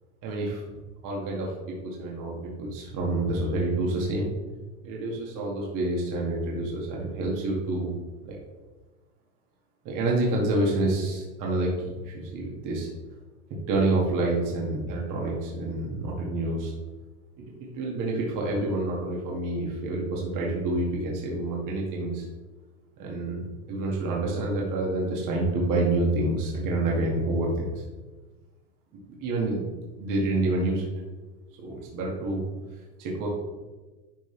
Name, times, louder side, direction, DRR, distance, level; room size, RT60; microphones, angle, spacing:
voice 1, 0.2-0.6 1.0-4.3 4.8-7.9 8.2-8.4 9.8-12.9 13.7-16.7 17.4-22.3 23.0-27.7 29.2-29.7 30.0-30.9 31.6-32.4 33.0-33.3, right 2 dB, 40° right, -3 dB, 2.3 m, -28 dB
11.5 x 5.4 x 3.4 m, 1.2 s
supercardioid pair, 130°, 47 cm